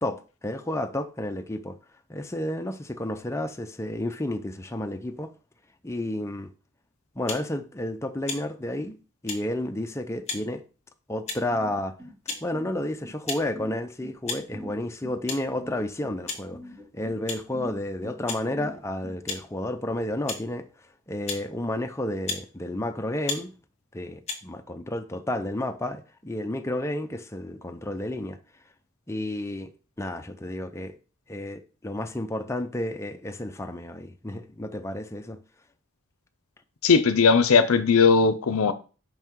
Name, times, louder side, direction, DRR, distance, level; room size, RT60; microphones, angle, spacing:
voice 1, 0.0-1.8 2.1-5.3 5.8-6.5 7.2-9.0 9.2-10.6 11.1-11.9 12.4-16.6 16.9-20.7 21.1-23.5 23.9-28.4 29.1-29.7 30.0-31.0 31.3-35.4, left 1 dB, 15° left, 0.5 m, -31 dB
sound 1, 7.3-7.5 8.3-8.4 9.3-9.4 10.3-10.4 11.3-11.5 12.3-12.4 13.3-13.4 14.3-14.4 15.3-15.4 16.3-16.4 17.3-17.4 18.3-18.4 19.3-19.4 20.3-20.4 21.3-21.4 22.3-22.4 23.3-23.4 24.3-24.4, left 4 dB, 30° left, 1.7 m, -33 dB
sound 2, 11.5-19.1, equal, 25° right, 2.4 m, -42 dB
voice 2, 36.8-38.7, left 5 dB, 80° left, 0.6 m, -18 dB
5.7 x 5.6 x 4.6 m
head